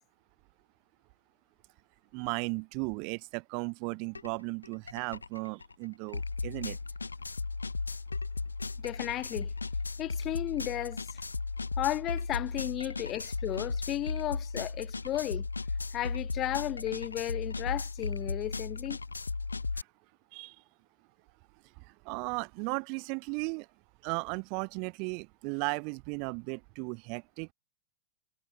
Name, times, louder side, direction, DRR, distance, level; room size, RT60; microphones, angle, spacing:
voice 1, 2.1-6.8 12.8-12.9 19.8-19.9 20.3-20.6 22.0-23.7 24.0-27.5, right 38 dB, 45° right, 0.6 m, -36 dB
sound 1, 4.1-4.3 4.6-19.8, left 3 dB, 80° left, 0.8 m, -36 dB
voice 2, 8.8-9.5 10.0-11.2 11.8-15.5 15.9-19.0, left 13 dB, 35° left, 1.2 m, -34 dB
figure-of-eight pair, 90°, 0 cm